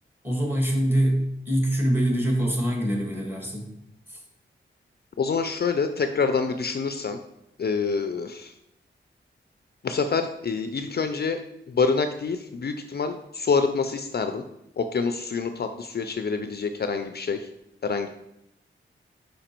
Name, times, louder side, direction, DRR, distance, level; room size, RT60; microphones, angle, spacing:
voice 1, 0.2-3.7 4.1-4.2, right 1 dB, 10° right, 1 dB, 1.7 m, -24 dB
voice 2, 5.2-7.2 7.6-8.5 9.8-11.4 11.7-14.4 14.8-17.5 17.8-18.1, left 5 dB, 50° left, 8 dB, 0.5 m, -26 dB
5.2 x 5.0 x 4.4 m, 0.84 s
wide cardioid pair, 75°, 21 cm